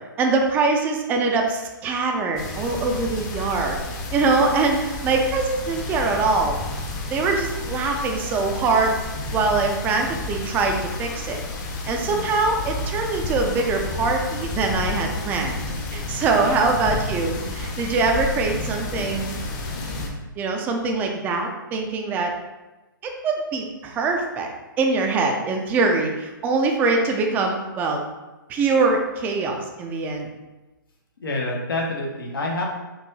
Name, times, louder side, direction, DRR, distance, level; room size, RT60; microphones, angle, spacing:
voice 1, 0.2-3.8 4.1-6.6 7.1-9.0 9.3-11.4 11.9-19.4 20.4-22.3 23.0-24.5 24.8-28.0 28.5-30.3, right 3 dB, 15° right, 2 dB, 0.5 m, -23 dB
sound 1, 2.3-20.1, left 2 dB, 25° left, 0.7 m, -31 dB
voice 2, 16.4-17.1 31.2-32.6, left 2 dB, 85° left, -1 dB, 1.3 m, -28 dB
4.6 x 2.7 x 4.0 m, 1.1 s
hypercardioid pair, 145°, 11 cm